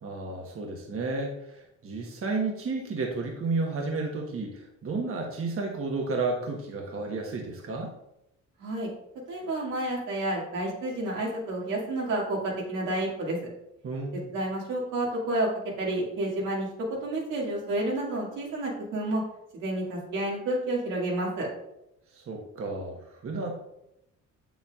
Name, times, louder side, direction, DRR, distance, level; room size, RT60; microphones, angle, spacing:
voice 1, 0.0-7.9 13.8-14.3 22.1-23.5, right 3 dB, 45° right, 1 dB, 1.2 m, -32 dB
voice 2, 9.3-13.4 14.3-15.5 15.8-19.2 19.5-21.5, right 1 dB, 90° right, -3 dB, 2.2 m, -30 dB
7.3 x 7.0 x 2.4 m, 0.84 s
cardioid pair, 90°, 30 cm